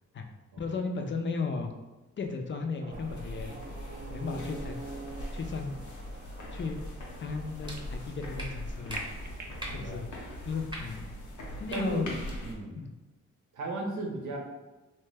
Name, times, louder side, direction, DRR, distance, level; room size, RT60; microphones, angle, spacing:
voice 1, 0.6-1.7 2.2-3.6 4.1-4.8 5.3-5.8 6.5-6.8 7.2-9.1 9.7-10.1 10.5-11.0 11.6-12.1 12.8-12.9, left 4 dB, 40° left, 5 dB, 0.4 m, -34 dB
sound 1, 2.8-9.7, right 3 dB, 30° right, 0.4 m, -46 dB
sound 2, 2.9-12.5, left 1 dB, 75° left, 0.7 m, -41 dB
sound 3, 7.6-7.8 8.4-8.5 8.9-9.0 9.6-9.8 10.7-10.8 11.7-11.8 12.2-12.4, right 1 dB, 15° right, 0.8 m, -38 dB
voice 2, 9.6-10.0 11.7-12.0 12.4-12.8 13.5-14.4, right 2 dB, 85° right, -1 dB, 0.8 m, -36 dB
2.8 x 2.1 x 3.3 m, 1.1 s
cardioid pair, 75°, 30 cm